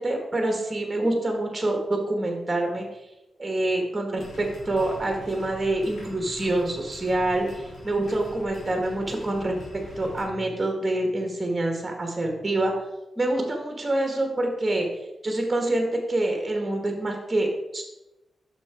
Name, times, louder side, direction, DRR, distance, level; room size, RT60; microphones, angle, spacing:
voice 1, 0.0-2.9 3.4-12.7 13.2-14.9 15.2-17.5 17.7-17.8, right 1 dB, 25° right, 2 dB, 1.6 m, -26 dB
sound 1, 4.2-10.2, equal, 75° left, 2.9 m, -43 dB
6.0 x 6.0 x 4.4 m, 0.95 s
cardioid pair, 75°, 0 cm